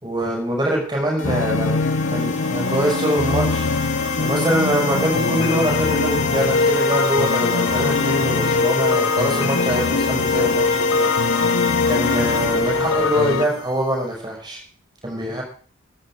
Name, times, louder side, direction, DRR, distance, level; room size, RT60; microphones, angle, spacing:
voice 1, 0.0-3.7 4.2-11.1 11.9-14.6 15.0-15.4, right 1 dB, 20° right, -1 dB, 6.0 m, -24 dB
sound 1, 1.2-13.5, left 3 dB, 80° left, 1.0 m, -22 dB
sound 2, 1.2-13.9, left 4 dB, 35° left, 1.2 m, -28 dB
15.0 x 12.0 x 4.8 m, 0.43 s
head